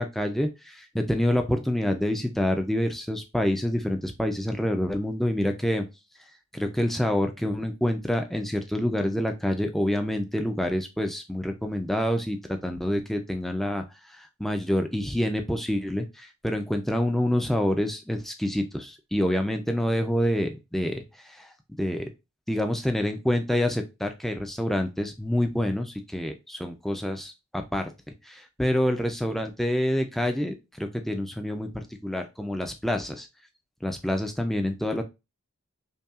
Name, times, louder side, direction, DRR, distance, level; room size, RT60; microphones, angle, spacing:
voice 1, 0.0-5.8 6.5-22.0 22.5-27.9 28.2-33.3 33.8-35.0, left 1 dB, ahead, 5 dB, 0.4 m, -27 dB
5.4 x 2.3 x 2.4 m, 0.26 s
head